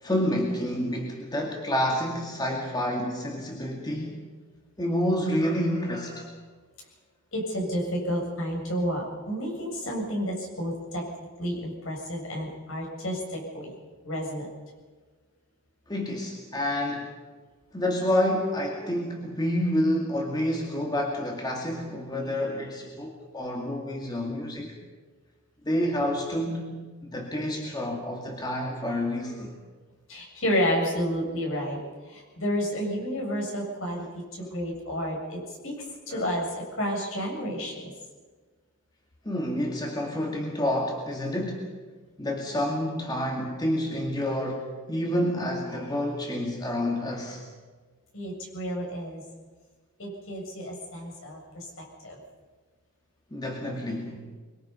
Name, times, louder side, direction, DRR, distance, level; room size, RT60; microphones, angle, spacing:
voice 1, 0.0-4.2 4.8-6.3 15.9-17.2 17.7-24.8 25.6-29.5 34.4-34.5 36.1-36.2 39.3-41.7 42.2-47.4 53.3-54.2, left 1 dB, 20° left, 0 dB, 2.3 m, -29 dB
voice 2, 7.3-11.0 11.4-13.7 14.0-14.5 30.1-31.8 32.1-35.7 36.1-37.9 48.1-49.2 50.0-52.2, equal, 65° left, -1 dB, 7.9 m, -31 dB
24.5 x 24.0 x 5.6 m, 1.4 s
head